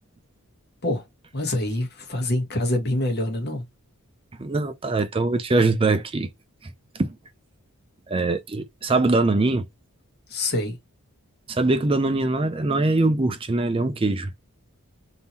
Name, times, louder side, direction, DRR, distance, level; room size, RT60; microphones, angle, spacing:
voice 1, 1.3-3.6 10.3-10.8, left 1 dB, 45° left, 1.2 m, -25 dB
voice 2, 4.4-6.3 6.6-7.1 8.1-9.6 11.5-14.3, right 2 dB, 25° right, 0.5 m, -22 dB
3.7 x 2.7 x 4.2 m
head